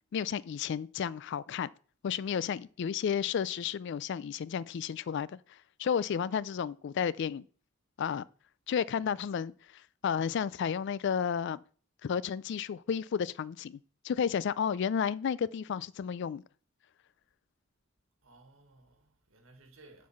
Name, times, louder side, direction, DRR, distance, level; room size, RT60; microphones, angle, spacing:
voice 1, 0.1-1.7 2.0-5.3 5.8-7.4 8.0-8.3 8.7-9.5 10.0-11.6 12.0-13.8 14.0-16.4, left 7 dB, 60° left, 0.3 m, -32 dB
voice 2, 9.0-9.4 18.2-20.1, right 2 dB, 80° right, 1.6 m, -59 dB
7.1 x 4.6 x 5.7 m
head